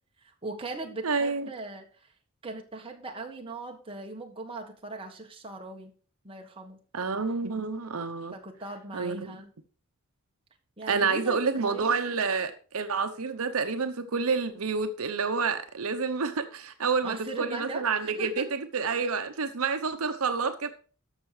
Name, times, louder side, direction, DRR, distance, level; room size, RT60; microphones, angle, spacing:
voice 1, 0.2-2.1 2.4-5.9 6.2-6.8 8.3-9.5 10.8-11.9 17.0-18.5, right 2 dB, 25° right, 1.6 m, -39 dB
voice 2, 1.0-1.5 6.9-8.4 8.9-9.3 10.9-20.7, right 5 dB, 75° right, 0.8 m, -29 dB
13.5 x 5.7 x 4.8 m
head